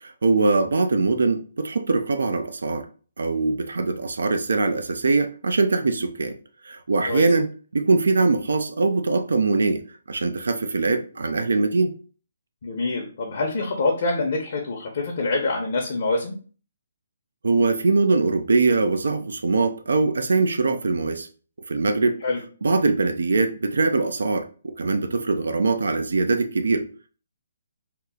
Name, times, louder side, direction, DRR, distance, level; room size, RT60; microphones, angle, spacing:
voice 1, 0.0-2.9 3.2-6.4 6.6-7.5 7.7-11.9 17.4-21.3 21.7-22.2 22.6-26.9, right 3 dB, 80° right, 0.4 m, -22 dB
voice 2, 12.6-16.4 22.2-22.4, left 3 dB, 55° left, 0.7 m, -25 dB
2.9 x 2.0 x 3.5 m
hypercardioid pair, 155°, 0 cm